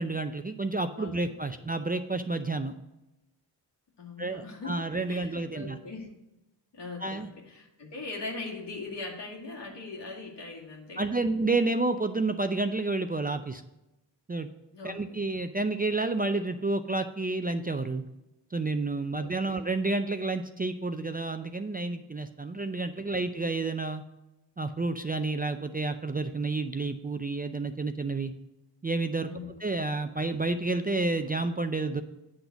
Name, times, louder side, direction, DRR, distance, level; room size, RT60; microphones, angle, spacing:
voice 1, 0.0-2.7 4.2-5.8 7.0-7.3 11.0-13.6 14.3-14.5 14.8-18.0 18.5-24.0 24.6-28.3 28.8-29.3 29.6-32.0, right 3 dB, 20° right, 8 dB, 0.4 m, -30 dB
voice 2, 1.0-1.3 4.0-6.1 6.7-11.2 14.7-15.2 19.2-19.7 29.3-29.6, left 3 dB, 65° left, -2 dB, 2.3 m, -41 dB
8.8 x 3.9 x 6.9 m, 0.95 s
cardioid pair, 55°, 45 cm